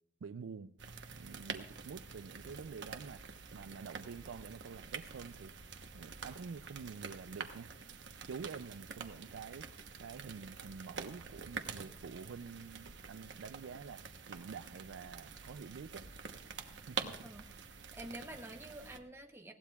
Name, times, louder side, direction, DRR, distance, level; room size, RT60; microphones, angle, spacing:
voice 1, 0.2-0.7 1.1-5.5 5.9-7.7 8.3-9.7 10.0-16.0 16.9-17.3, right 5 dB, 85° right, 0.4 m, -48 dB
sound 1, 0.8-19.0, right 5 dB, 70° right, 1.0 m, -47 dB
voice 2, 17.2-19.5, right 1 dB, 15° right, 0.9 m, -49 dB
20.0 x 16.5 x 2.4 m
head